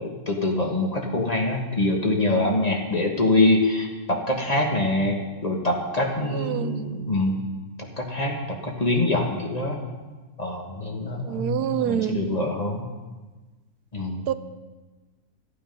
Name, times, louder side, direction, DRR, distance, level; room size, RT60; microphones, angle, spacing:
voice 1, 0.0-7.4 8.0-9.8 10.4-12.9 13.9-14.3, left 2 dB, 25° left, 1 dB, 1.5 m, -24 dB
voice 2, 6.3-6.8 11.2-12.2 14.3-14.4, right 10 dB, 90° right, 12 dB, 1.1 m, -26 dB
14.5 x 8.6 x 5.3 m, 1.3 s
omnidirectional pair, 1.6 m